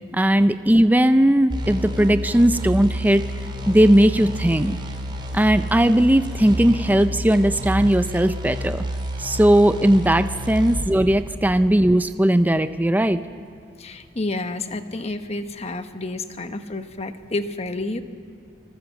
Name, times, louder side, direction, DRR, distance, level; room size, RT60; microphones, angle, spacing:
voice 1, 0.1-3.2 3.7-4.8 5.3-8.8 9.2-13.2, right 1 dB, 10° right, 10 dB, 0.6 m, -18 dB
sound 1, 1.5-10.9, equal, 25° right, 3.4 m, -29 dB
voice 2, 13.8-18.0, left 2 dB, 35° left, 8 dB, 1.1 m, -30 dB
25.0 x 21.5 x 7.3 m, 2.4 s
head